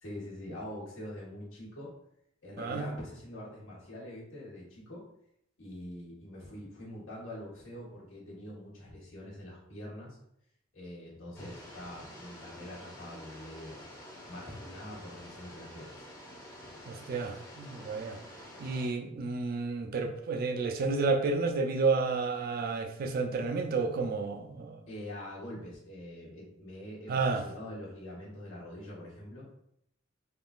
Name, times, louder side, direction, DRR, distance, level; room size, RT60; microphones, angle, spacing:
voice 1, 0.0-1.9 2.4-5.0 5.6-10.2 10.7-13.9 14.3-15.9 24.9-29.5, left 1 dB, 90° left, 1.3 m, -44 dB
voice 2, 2.6-2.9 16.9-18.2 18.6-24.8 27.1-27.5, right 4 dB, 50° right, 0.3 m, -31 dB
sound 1, 11.3-18.9, left 1 dB, 15° left, 0.6 m, -49 dB
3.5 x 2.4 x 2.4 m
head